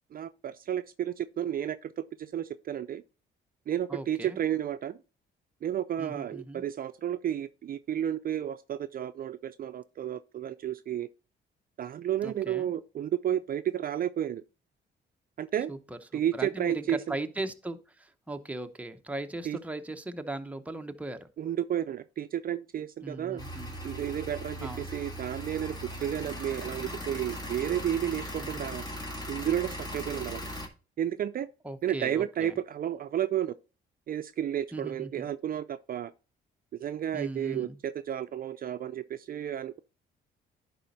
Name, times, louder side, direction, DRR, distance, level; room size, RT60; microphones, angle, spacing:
voice 1, 0.1-3.0 3.7-5.0 5.6-11.1 11.8-14.4 15.4-15.7 16.1-17.0 19.4-19.6 21.4-23.4 23.8-28.8 29.3-30.4 31.0-31.5 31.8-33.5 34.1-36.1 36.8-39.8, right 10 dB, 45° right, 0.4 m, -32 dB
voice 2, 3.9-4.4 6.0-6.6 12.2-12.7 15.7-15.8 16.1-21.3 23.0-23.7 24.6-24.8 28.4-28.5 31.6-32.5 34.7-35.3 37.1-37.8, right 2 dB, 5° right, 0.8 m, -38 dB
sound 1, 23.4-30.7, equal, 20° left, 2.1 m, -39 dB
11.0 x 4.2 x 4.0 m
cardioid pair, 90°, 20 cm